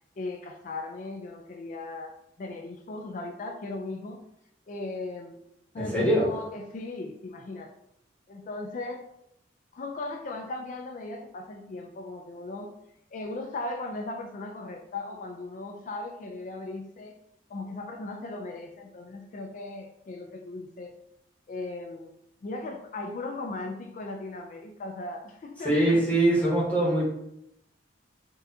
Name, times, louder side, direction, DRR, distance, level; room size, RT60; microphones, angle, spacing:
voice 1, 0.2-4.2 4.7-5.4 5.7-7.7 8.3-9.1 9.7-12.7 13.1-17.1 17.5-21.0 21.5-22.1 22.4-26.0, left 2 dB, 45° left, 3 dB, 0.3 m, -37 dB
voice 2, 5.8-6.3 25.6-27.0, right 1 dB, 10° left, -7 dB, 1.1 m, -23 dB
4.1 x 2.4 x 2.6 m, 0.78 s
head